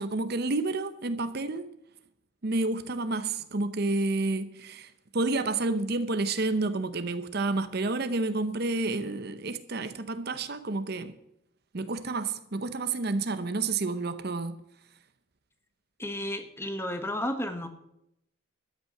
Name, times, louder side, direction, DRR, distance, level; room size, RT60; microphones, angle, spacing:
voice 1, 0.0-1.7 2.4-11.1 11.7-14.6, right 3 dB, 50° right, 0.8 m, -30 dB
voice 2, 16.0-17.7, left 1 dB, 10° left, 1.1 m, -32 dB
13.0 x 9.3 x 6.7 m
head